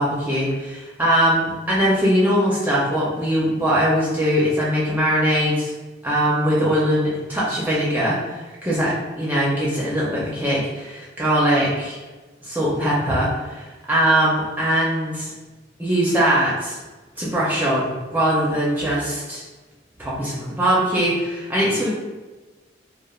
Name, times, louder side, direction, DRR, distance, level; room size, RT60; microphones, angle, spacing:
voice 1, 0.0-5.7 6.0-12.0 12.4-15.3 15.8-16.8 17.2-19.4 20.0-21.9, equal, 10° right, -7 dB, 0.4 m, -21 dB
3.1 x 2.1 x 2.3 m, 1.2 s
head